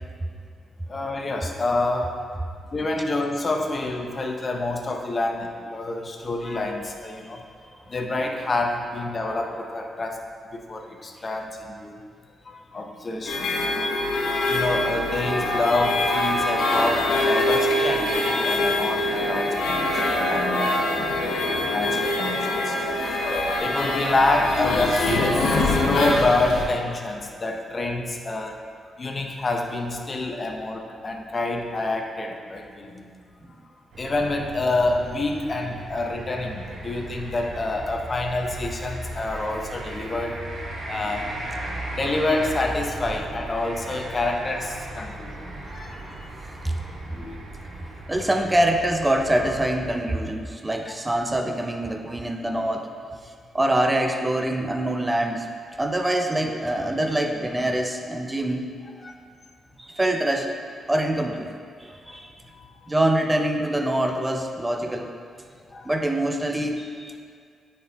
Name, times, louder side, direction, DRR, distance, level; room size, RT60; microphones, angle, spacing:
voice 1, 0.9-2.1 2.7-7.4 7.9-12.0 12.4-13.6 14.5-21.1 21.7-22.8 23.6-28.6 29.0-33.1 34.0-40.4 40.9-41.4 41.9-46.0 47.2-47.3 50.8-50.9 56.8-56.9 59.0-59.1 62.1-62.2 62.5-62.9 65.7-65.9, left 2 dB, 35° left, 3 dB, 0.7 m, -27 dB
sound 1, 13.3-26.6, left 1 dB, 80° left, 1.2 m, -24 dB
sound 2, 33.9-49.9, right 1 dB, 70° right, 1.2 m, -37 dB
voice 2, 48.1-52.9 53.5-55.5 55.8-58.7 59.8-60.5 60.9-61.5 61.8-62.3 62.9-65.1 65.8-67.2, right 1 dB, 15° right, 4 dB, 0.6 m, -24 dB
9.0 x 4.4 x 3.5 m, 2.1 s
cardioid pair, 90°, 0 cm